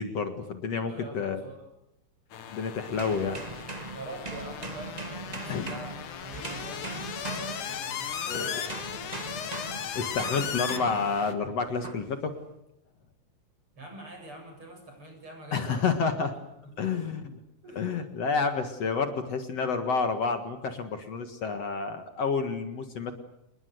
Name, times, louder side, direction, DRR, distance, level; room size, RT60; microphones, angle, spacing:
voice 1, 0.0-1.5 2.5-3.4 5.5-5.8 8.2-8.6 9.9-12.3 15.5-16.3 16.8-17.3 17.7-23.1, left 5 dB, 55° left, 7 dB, 2.7 m, -29 dB
voice 2, 0.9-1.7 3.9-6.0 6.2-8.7 9.0-9.2 13.8-15.9 16.3-16.4 16.6-17.0 17.6-17.8, right 2 dB, 40° right, 4 dB, 8.3 m, -45 dB
sound 1, 2.3-11.3, left 8 dB, 80° left, 3.2 m, -37 dB
sound 2, 2.9-8.2 8.7-11.2 11.8-12.1, right 3 dB, 60° right, 0.4 m, -40 dB
28.5 x 21.0 x 8.0 m, 0.85 s
omnidirectional pair, 3.6 m